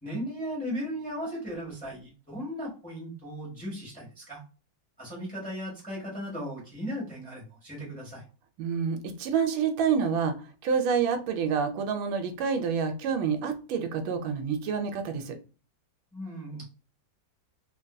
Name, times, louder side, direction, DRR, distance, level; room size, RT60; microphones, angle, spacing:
voice 1, 0.0-4.4 5.0-8.2 16.1-16.6, equal, 5° left, -4 dB, 0.9 m, -36 dB
voice 2, 8.6-10.4 10.6-15.3, right 6 dB, 85° right, 6 dB, 1.4 m, -28 dB
3.4 x 2.6 x 2.2 m, 0.35 s
omnidirectional pair, 2.1 m